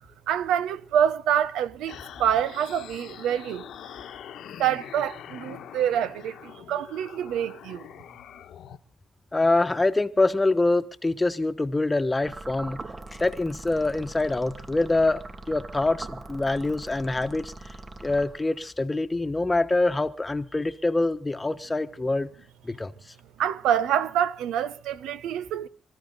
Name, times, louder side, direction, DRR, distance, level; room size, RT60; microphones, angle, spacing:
voice 1, 0.3-3.7 4.6-7.9 23.4-25.7, right 9 dB, 90° right, 0.8 m, -26 dB
sound 1, 1.9-8.8, left 10 dB, 75° left, 1.1 m, -44 dB
voice 2, 9.3-12.8 13.2-15.2 15.5-17.7 18.0-22.3 22.6-22.9, left 2 dB, 15° left, 1.1 m, -25 dB
sound 2, 12.2-18.7, right 2 dB, 25° right, 0.9 m, -41 dB
26.0 x 14.0 x 4.0 m
cardioid pair, 90°, 0 cm